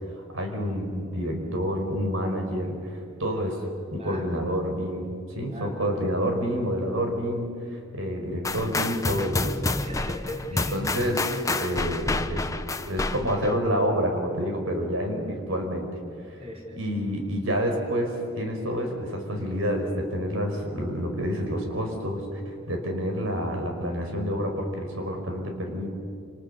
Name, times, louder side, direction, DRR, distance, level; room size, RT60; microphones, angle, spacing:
voice 1, 0.1-3.6 3.9-9.4 10.5-12.5 12.9-15.9 16.3-16.4 16.7-22.4 22.7-26.0, equal, 85° right, 3 dB, 5.3 m, -28 dB
sound 1, 8.4-13.6, left 2 dB, 15° left, 0.9 m, -29 dB
voice 2, 9.7-10.8 11.3-11.4 16.4-16.8, left 1 dB, 30° right, -1 dB, 4.8 m, -38 dB
29.0 x 29.0 x 7.0 m, 2.4 s
head